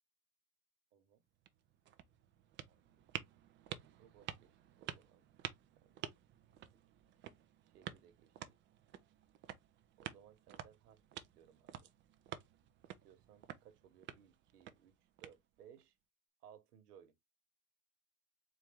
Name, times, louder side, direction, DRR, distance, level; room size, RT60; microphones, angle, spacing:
voice 1, 0.9-1.2 2.7-3.0 3.7-5.2 5.8-6.0 6.6-6.7 7.7-8.6 10.0-11.9 13.0-14.9 15.2-15.9 16.4-17.1, right 9 dB, 80° right, 1.3 m, -63 dB
sound 1, 1.3-15.8, right 11 dB, 25° right, 0.5 m, -51 dB
4.3 x 2.6 x 3.5 m
supercardioid pair, 120°, 46 cm